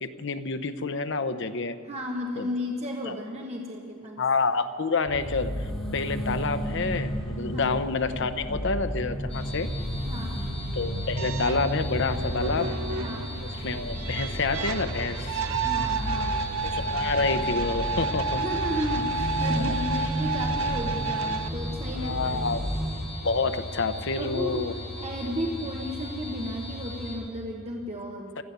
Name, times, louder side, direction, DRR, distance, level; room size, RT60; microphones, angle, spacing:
voice 1, 0.0-1.8 2.4-2.5 3.0-3.2 4.2-9.7 10.7-12.8 13.6-15.4 16.6-18.4 19.6-19.8 22.0-22.6 22.9-23.0 23.2-24.7 28.4-28.5, left 4 dB, 60° left, 9 dB, 0.8 m, -28 dB
voice 2, 1.9-4.2 7.5-7.7 10.0-10.4 12.5-13.3 15.6-16.5 18.4-22.5 24.1-28.3, left 1 dB, 30° right, 0 dB, 1.2 m, -34 dB
sound 1, 5.1-23.1, equal, ahead, 3.0 m, -33 dB
sound 2, 9.3-27.2, left 1 dB, 30° left, 4.6 m, -38 dB
sound 3, 11.2-21.5, right 4 dB, 75° right, 0.6 m, -31 dB
16.5 x 13.0 x 6.8 m, 2.3 s
head